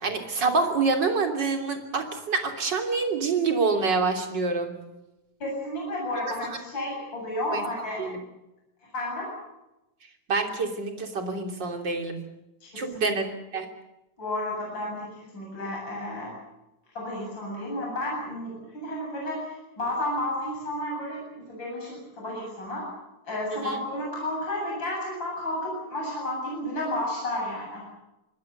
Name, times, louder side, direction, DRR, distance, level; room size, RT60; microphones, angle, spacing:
voice 1, 0.0-4.7 7.5-7.6 8.0-8.2 10.3-12.2 12.7-13.3 13.5-13.7 23.6-23.8, right 4 dB, 30° right, 4 dB, 3.1 m, -26 dB
voice 2, 5.4-8.0 8.9-9.3 12.6-13.1 14.2-16.3 17.0-22.9 23.3-27.8, left 1 dB, 25° left, -2 dB, 8.6 m, -32 dB
26.0 x 21.0 x 6.7 m, 0.95 s
omnidirectional pair, 4.8 m